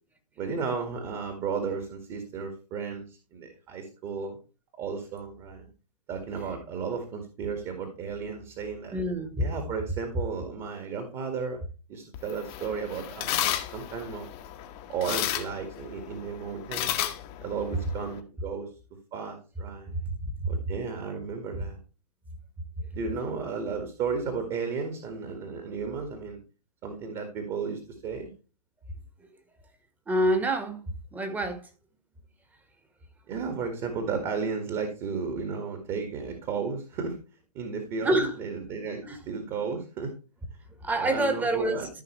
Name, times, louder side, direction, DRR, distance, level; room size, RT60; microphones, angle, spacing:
voice 1, 0.4-4.4 4.8-5.7 6.1-9.0 9.4-11.6 11.9-14.3 14.9-17.0 17.4-18.7 19.1-20.0 20.5-21.8 22.9-26.4 26.8-28.3 33.3-37.2 37.5-40.1 41.0-41.9, right 5 dB, 30° right, 1.9 m, -34 dB
voice 2, 8.9-9.4 20.4-20.5 30.1-31.6 38.0-38.3 39.0-39.2 40.8-41.9, right 1 dB, 10° right, 1.5 m, -27 dB
sound 1, 12.1-18.2, left 12 dB, 30° left, 1.2 m, -33 dB
14.0 x 5.6 x 3.2 m
hypercardioid pair, 130°, 20 cm